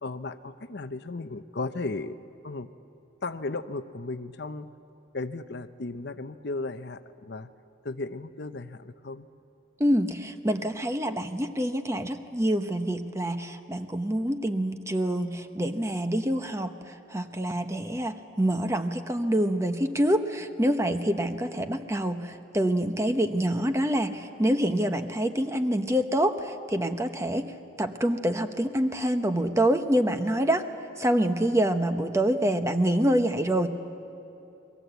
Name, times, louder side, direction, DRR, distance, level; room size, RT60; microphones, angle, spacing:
voice 1, 0.0-2.2 2.4-2.7 3.2-4.7 5.1-7.5 7.8-9.3 32.4-32.5, left 3 dB, 55° left, 10 dB, 0.8 m, -35 dB
voice 2, 9.8-33.7, right 1 dB, 15° right, 7 dB, 0.9 m, -26 dB
30.0 x 22.5 x 8.1 m, 2.8 s
head